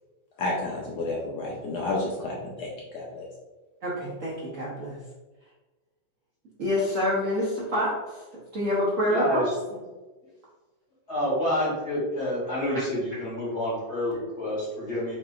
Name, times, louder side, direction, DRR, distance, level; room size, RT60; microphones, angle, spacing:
voice 1, 0.4-3.3, left 2 dB, 70° left, -3 dB, 1.2 m, -31 dB
voice 2, 3.8-5.0 6.6-8.0 8.5-9.4 12.5-12.6, left 1 dB, 50° right, -6 dB, 1.1 m, -27 dB
voice 3, 9.1-9.4 11.1-15.2, left 1 dB, 35° left, -7 dB, 1.8 m, -28 dB
6.0 x 2.8 x 2.4 m, 1.2 s
omnidirectional pair, 2.1 m